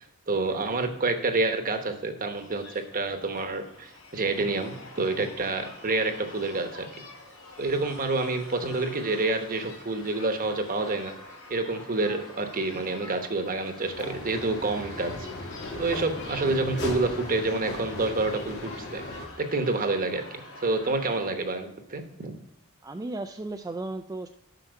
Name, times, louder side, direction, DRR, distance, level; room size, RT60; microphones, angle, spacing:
voice 1, 0.3-6.9 7.6-11.1 11.5-15.3 15.8-19.0 19.4-22.4, right 3 dB, 40° right, 7 dB, 1.0 m, -28 dB
sound 1, 2.3-21.3, left 2 dB, 85° left, 3.2 m, -46 dB
sound 2, 13.8-19.3, left 2 dB, 55° left, 2.0 m, -37 dB
voice 2, 22.8-24.3, right 2 dB, 15° right, 5 dB, 0.3 m, -35 dB
7.9 x 6.0 x 4.5 m, 0.82 s
head